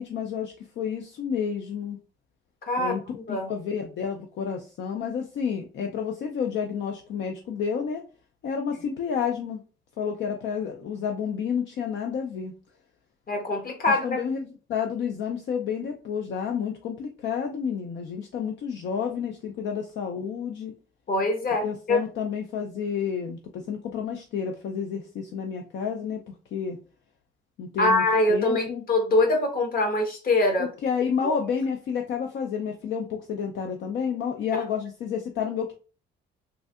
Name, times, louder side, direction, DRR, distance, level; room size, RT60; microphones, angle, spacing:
voice 1, 0.0-2.0 2.8-3.0 3.3-8.0 8.4-9.6 10.0-12.5 13.9-20.7 21.6-26.2 26.5-26.8 27.6-28.0 28.3-28.8 30.6-35.7, left 7 dB, 70° left, 0.5 m, -30 dB
voice 2, 2.6-2.9 3.3-3.5 13.3-14.2 21.1-22.0 27.8-30.7 31.2-31.3 34.5-34.6, left 2 dB, 50° left, 1.0 m, -23 dB
3.2 x 2.6 x 2.3 m
cardioid pair, 90°, 20 cm